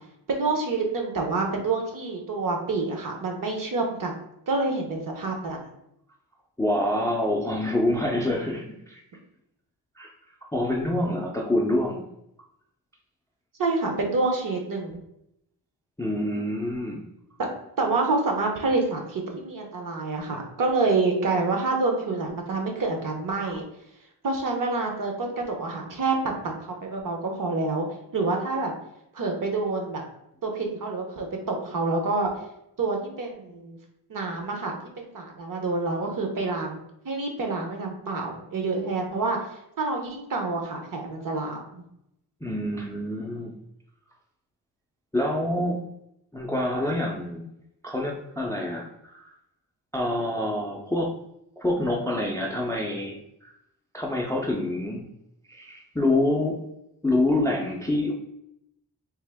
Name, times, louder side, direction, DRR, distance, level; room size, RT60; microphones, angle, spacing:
voice 1, 0.3-4.1 4.5-5.6 13.6-15.0 17.4-17.5 17.8-23.6 24.2-27.9 28.1-28.7 29.1-30.0 30.4-32.3 32.8-33.8 34.1-36.8 37.0-39.4 39.8-41.8, right 3 dB, 50° right, 2 dB, 0.7 m, -27 dB
voice 2, 6.6-9.0 10.0-10.1 10.5-12.0 16.0-17.0 42.4-43.5 45.1-45.8 46.3-47.5 47.8-49.3 49.9-51.1 51.6-53.5 53.9-55.1 55.5-56.6 57.0-58.1, left 1 dB, 10° left, 0 dB, 0.3 m, -26 dB
3.5 x 2.8 x 3.3 m, 0.79 s
wide cardioid pair, 175°, 41 cm